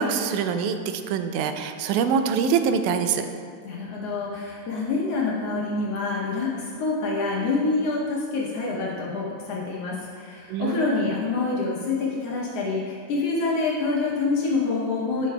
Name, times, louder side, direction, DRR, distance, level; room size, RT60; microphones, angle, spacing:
voice 1, 0.0-3.3 10.5-11.0, right 6 dB, 90° right, 8 dB, 2.0 m, -24 dB
voice 2, 3.6-15.3, left 3 dB, 70° left, -3 dB, 1.6 m, -26 dB
11.5 x 6.4 x 2.2 m, 2.1 s
omnidirectional pair, 3.4 m